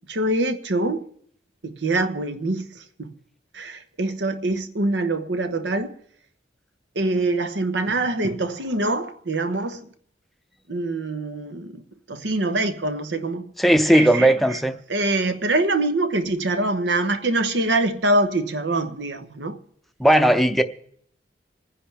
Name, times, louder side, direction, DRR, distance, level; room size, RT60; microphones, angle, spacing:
voice 1, 0.1-1.0 1.6-2.7 3.0-3.1 3.5-5.9 6.9-9.9 10.7-11.8 12.1-13.5 13.9-14.3 14.9-19.6, right 2 dB, 85° right, 1.1 m, -24 dB
voice 2, 13.6-14.8 20.0-20.6, right 1 dB, ahead, 0.6 m, -17 dB
26.5 x 10.0 x 3.4 m
head